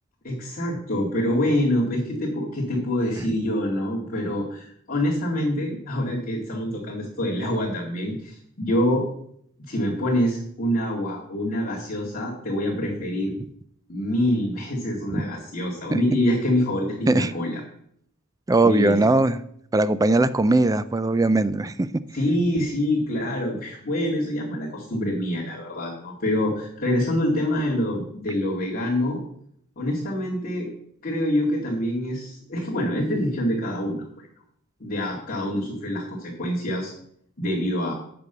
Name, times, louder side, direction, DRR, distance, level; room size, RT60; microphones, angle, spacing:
voice 1, 0.2-9.1 9.6-13.3 13.9-17.6 18.6-19.0 22.1-29.2 29.8-30.7 31.0-34.3 34.8-36.9 37.4-37.9, left 1 dB, 40° left, -9 dB, 2.3 m, -26 dB
voice 2, 18.5-19.4 19.7-21.9, right 2 dB, 15° right, 15 dB, 0.4 m, -20 dB
8.1 x 5.4 x 6.9 m, 0.69 s
head